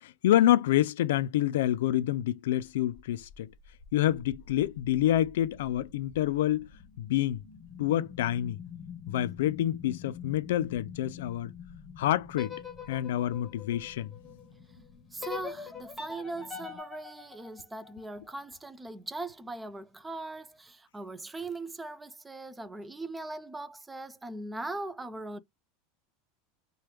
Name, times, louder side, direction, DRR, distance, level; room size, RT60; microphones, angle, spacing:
voice 1, 0.0-3.5 3.9-6.7 7.0-7.4 7.8-8.6 9.1-11.5 12.0-12.6 12.9-14.1, left 12 dB, 85° left, 0.3 m, -27 dB
sound 1, 2.7-16.8, left 7 dB, 40° left, 0.7 m, -48 dB
sound 2, 12.3-14.5 15.2-18.3, left 5 dB, 10° left, 1.1 m, -43 dB
voice 2, 15.1-25.4, right 2 dB, 10° right, 0.3 m, -40 dB
3.3 x 2.3 x 3.0 m
supercardioid pair, 135°, 0 cm